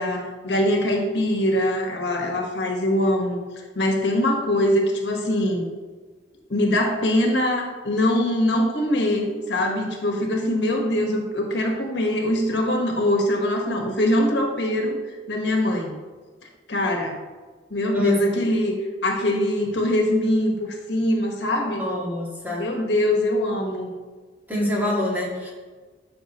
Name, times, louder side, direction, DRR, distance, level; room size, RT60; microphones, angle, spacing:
voice 1, 0.0-3.4 3.7-5.7 6.5-15.0 15.3-15.9 16.7-17.2 17.7-18.7 19.0-21.9 22.6-23.9, left 1 dB, 70° left, 2 dB, 1.5 m, -23 dB
voice 2, 17.9-18.3 21.8-22.7 24.5-25.5, left 1 dB, 10° right, -4 dB, 1.9 m, -25 dB
12.0 x 6.3 x 3.1 m, 1.4 s
head